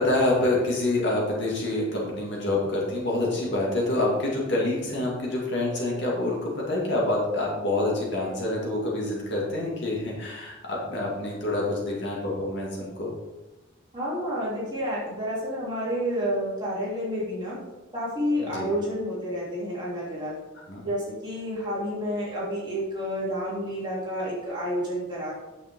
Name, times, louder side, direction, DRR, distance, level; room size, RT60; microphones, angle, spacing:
voice 1, 0.0-13.1 18.4-18.7 20.7-20.8, left 2 dB, 55° left, -3 dB, 2.3 m, -27 dB
voice 2, 13.9-17.6 17.9-20.4 20.8-25.3, equal, 20° right, -7 dB, 3.2 m, -30 dB
9.1 x 6.9 x 3.7 m, 1.1 s
head